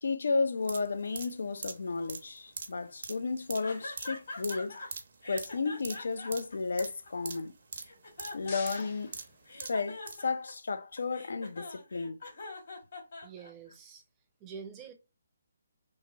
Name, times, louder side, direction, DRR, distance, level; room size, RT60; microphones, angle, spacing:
voice 1, 0.0-4.8 5.3-7.5 8.3-9.1 9.5-12.2, left 4 dB, 75° left, 0.4 m, -33 dB
sound 1, 0.6-10.2 10.5-10.6, right 5 dB, 55° right, 0.6 m, -43 dB
sound 2, 3.6-4.9 5.2-7.4 7.8-9.1 9.5-13.7, left 2 dB, 55° left, 1.5 m, -43 dB
sound 3, 7.9-10.1, left 4 dB, 35° left, 0.8 m, -49 dB
voice 2, 13.2-14.0 14.4-14.9, right 6 dB, 15° right, 0.6 m, -46 dB
3.1 x 2.2 x 3.7 m
hypercardioid pair, 160°, 0 cm